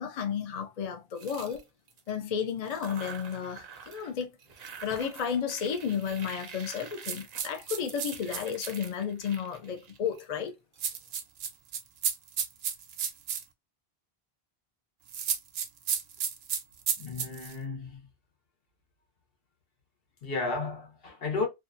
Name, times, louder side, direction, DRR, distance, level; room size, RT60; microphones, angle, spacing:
voice 1, 0.0-1.6 2.1-4.3 4.8-10.5, left 7 dB, 50° left, 0.5 m, -32 dB
sound 1, 1.2-2.2 2.6-4.1 4.4-10.8, right 6 dB, 50° right, 0.5 m, -47 dB
sound 2, 7.0-8.9 10.8-13.4 15.1-17.5, right 7 dB, 80° right, 0.8 m, -32 dB
voice 2, 17.0-18.1 20.2-21.5, left 3 dB, 70° left, 1.1 m, -33 dB
2.7 x 2.3 x 2.4 m
omnidirectional pair, 1.0 m